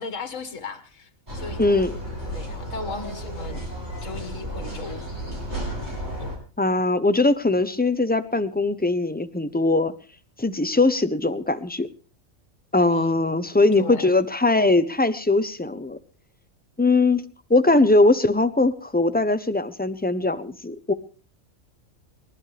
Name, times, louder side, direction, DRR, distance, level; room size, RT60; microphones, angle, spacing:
voice 1, 0.0-1.8 2.3-3.6 4.0-5.0 6.2-6.4 12.8-13.2 13.8-14.1, left 4 dB, 65° left, 9 dB, 2.0 m, -36 dB
sound 1, 1.3-6.4, right 1 dB, 35° right, 7.8 m, -33 dB
voice 2, 1.6-2.0 6.6-9.9 10.4-11.9 12.7-16.0 16.8-17.2 17.5-20.9, left 2 dB, 10° left, 11 dB, 0.5 m, -21 dB
29.5 x 11.5 x 3.3 m, 0.38 s
omnidirectional pair, 1.4 m